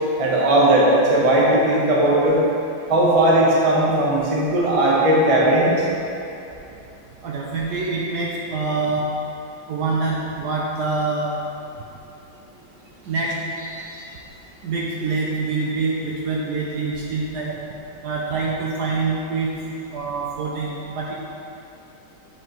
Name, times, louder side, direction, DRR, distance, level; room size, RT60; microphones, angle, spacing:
voice 1, 0.2-2.4 2.9-5.8, right 1 dB, 30° right, -5 dB, 0.7 m, -17 dB
voice 2, 7.2-9.0 9.7-11.4 13.0-14.1 14.6-17.6 18.0-19.5 19.9-21.1, right 3 dB, 70° right, -3 dB, 1.0 m, -25 dB
7.7 x 4.7 x 3.0 m, 2.7 s
omnidirectional pair, 2.1 m